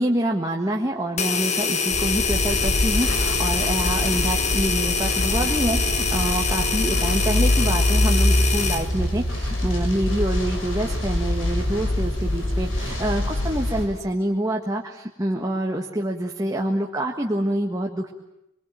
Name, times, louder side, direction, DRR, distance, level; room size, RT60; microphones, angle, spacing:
voice 1, 0.0-18.1, right 1 dB, 15° right, 1 dB, 1.6 m, -26 dB
sound 1, 1.2-8.9, left 5 dB, 35° left, 1.6 m, -25 dB
sound 2, 1.9-13.8, left 1 dB, 90° left, 6.5 m, -24 dB
26.0 x 23.0 x 9.0 m, 0.85 s
head